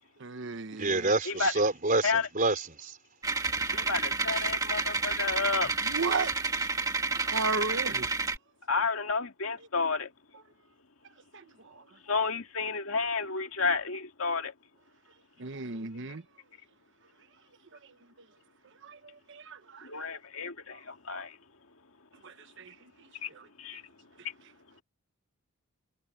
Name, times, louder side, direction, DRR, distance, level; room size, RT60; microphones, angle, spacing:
voice 1, 0.2-1.1 3.7-3.9 5.8-6.3 7.1-8.1 11.3-11.8 15.4-16.2 18.8-19.9 22.2-23.5, right 4 dB, 60° right, 1.0 m, -35 dB
voice 2, 0.7-3.0, right 2 dB, 40° right, 3.9 m, -28 dB
sound 1, 3.2-8.4, right 4 dB, 15° right, 2.1 m, -30 dB
voice 3, 3.6-5.7 8.7-10.1 12.1-14.5 19.8-21.4 23.2-23.3 23.6-23.8, left 4 dB, 75° left, 2.1 m, -31 dB
head